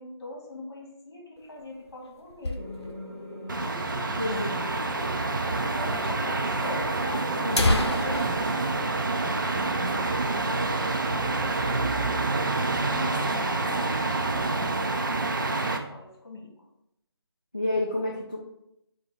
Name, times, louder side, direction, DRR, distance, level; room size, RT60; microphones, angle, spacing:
voice 1, 0.0-2.7 3.6-4.2 4.5-8.8 9.9-10.4 11.2-12.2 12.6-14.1 15.6-16.5, left 1 dB, 55° left, -2 dB, 1.6 m, -41 dB
sound 1, 1.4-3.2 3.5-3.6 3.8-3.9 4.6-4.7 5.6-5.7 6.0-6.1 6.9-7.0 7.3-9.9 10.2-10.4 10.8-11.0 11.5-12.0, left 2 dB, 75° left, 0.7 m, -30 dB
sound 2, 2.5-8.3, equal, 20° right, 0.7 m, -42 dB
sound 3, 3.5-15.8, right 3 dB, 50° right, 0.5 m, -27 dB
voice 2, 4.2-4.6 7.4-7.9 17.5-18.4, left 1 dB, 20° left, -5 dB, 0.3 m, -29 dB
5.3 x 2.2 x 4.3 m, 0.82 s
figure-of-eight pair, 170°, 14 cm